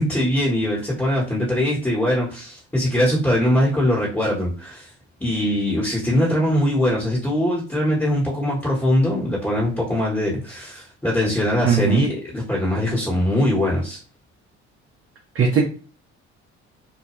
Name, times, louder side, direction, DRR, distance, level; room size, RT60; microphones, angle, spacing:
voice 1, 0.0-4.9 5.2-14.0, left 1 dB, 5° left, -6 dB, 1.2 m, -22 dB
voice 2, 11.6-12.0 15.4-15.6, right 6 dB, 40° right, 0 dB, 0.7 m, -18 dB
2.3 x 2.2 x 3.0 m, 0.37 s
hypercardioid pair, 60°, 34 cm